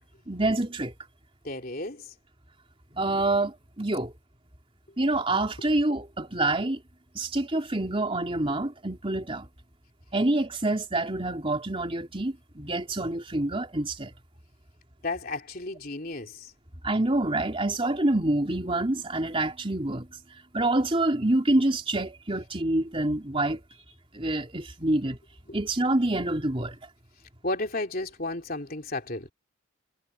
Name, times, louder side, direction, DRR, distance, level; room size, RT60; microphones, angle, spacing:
voice 1, 0.3-0.9 3.0-4.1 5.0-6.8 7.2-9.5 10.1-14.1 16.8-20.1 20.5-23.6 24.1-25.2 25.5-26.8, right 2 dB, 25° right, 3.4 m, -27 dB
voice 2, 1.4-2.1 15.0-16.5 27.4-29.3, left 2 dB, 45° left, 3.5 m, -33 dB
head